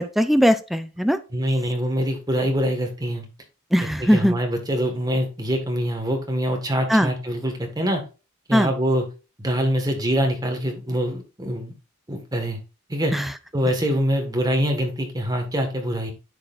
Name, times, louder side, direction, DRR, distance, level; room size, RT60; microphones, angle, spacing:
voice 1, 0.0-1.2 3.7-4.3 6.9-7.1 8.5-8.7 13.1-13.3, equal, ahead, 9 dB, 0.5 m, -19 dB
voice 2, 1.3-3.2 4.0-8.0 8.5-9.0 9.4-11.7 12.1-12.6 12.9-13.1 13.5-16.1, equal, 20° right, 3 dB, 1.6 m, -24 dB
9.9 x 6.6 x 2.5 m, 0.32 s
head